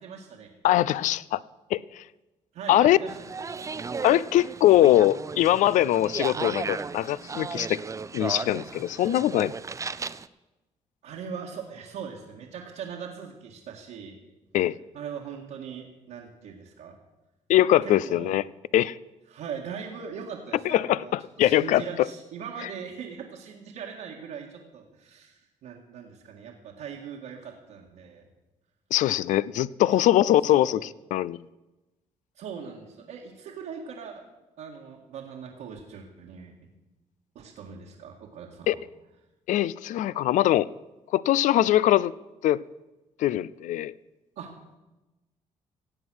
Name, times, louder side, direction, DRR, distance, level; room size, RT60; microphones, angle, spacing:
voice 1, 0.0-0.5 2.5-3.2 3.5-3.7 6.3-6.6 11.0-14.2 14.9-17.0 17.8-18.3 19.3-21.1 21.4-28.2 29.9-30.0 30.5-30.9 32.4-34.2 34.6-36.5 37.4-38.8 44.4-44.5, right 7 dB, 85° right, -4 dB, 1.8 m, -40 dB
voice 2, 0.6-1.4 1.7-1.8 2.7-3.0 4.0-7.8 8.1-9.5 14.5-14.7 17.5-18.5 18.7-19.0 20.6-22.1 28.9-31.4 38.7-38.8 39.5-40.7 41.1-42.1 42.4-42.6 43.2-43.9, left 13 dB, 75° left, 20 dB, 0.4 m, -22 dB
sound 1, 3.1-10.3, right 4 dB, 25° right, 0.5 m, -35 dB
16.5 x 8.1 x 6.2 m, 1.1 s
cardioid pair, 90°, 13 cm